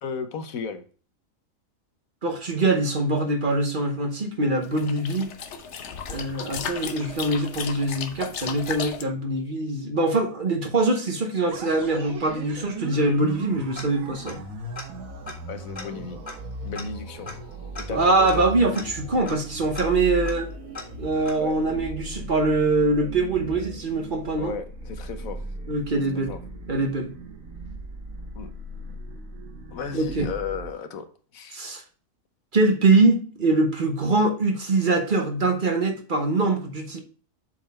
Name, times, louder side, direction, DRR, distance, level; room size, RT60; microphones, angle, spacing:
voice 1, 0.0-0.8 15.5-16.2 16.6-17.3 17.8-18.5 21.4-21.6 24.4-25.4 26.2-26.4 28.3-28.5 29.7-31.1 31.3-31.6, left 6 dB, 85° left, 9 dB, 1.3 m, -34 dB
voice 2, 2.2-5.3 6.1-14.4 17.9-20.5 21.0-24.5 25.7-26.3 26.7-27.1 29.9-30.3 31.5-31.8 32.5-37.0, right 2 dB, 40° right, 5 dB, 1.1 m, -23 dB
sound 1, 4.6-9.0, left 7 dB, 60° left, 1.0 m, -35 dB
sound 2, 11.5-30.7, right 2 dB, 80° right, 1.7 m, -38 dB
Tick-tock, 13.7-14.5 14.7-14.8 15.2-21.7, left 2 dB, 30° left, 1.9 m, -42 dB
7.5 x 4.2 x 4.2 m, 0.39 s
omnidirectional pair, 1.4 m